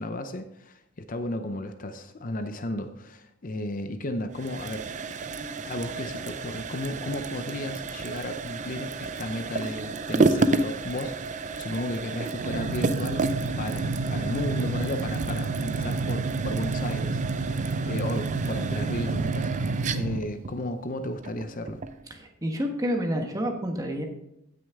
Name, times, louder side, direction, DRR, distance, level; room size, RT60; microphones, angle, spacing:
voice 1, 0.0-4.9 5.7-13.3 13.6-21.8, left 1 dB, 40° left, 8 dB, 0.6 m, -34 dB
sound 1, 4.3-22.0, right 3 dB, 35° right, 0.5 m, -31 dB
sound 2, 12.4-20.2, right 3 dB, 85° right, 0.6 m, -30 dB
voice 2, 22.1-24.0, equal, 15° right, 3 dB, 1.3 m, -29 dB
16.5 x 6.4 x 3.6 m, 0.80 s
head